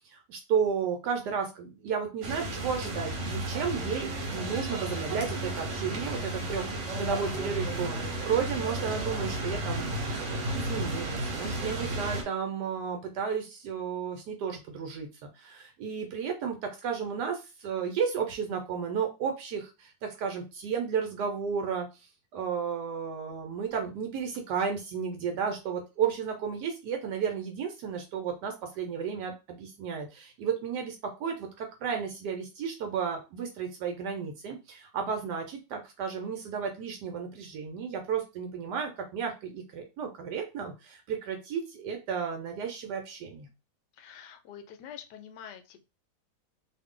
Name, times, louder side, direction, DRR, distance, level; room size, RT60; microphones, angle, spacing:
voice 1, 0.0-10.1 10.5-15.1 15.3-43.5, right 6 dB, 75° right, 4 dB, 1.2 m, -33 dB
sound 1, 2.2-12.2, right 1 dB, 50° right, 1.0 m, -33 dB
voice 2, 43.9-45.8, left 8 dB, 80° left, 7 dB, 1.2 m, -46 dB
2.6 x 2.5 x 3.6 m, 0.28 s
omnidirectional pair, 1.8 m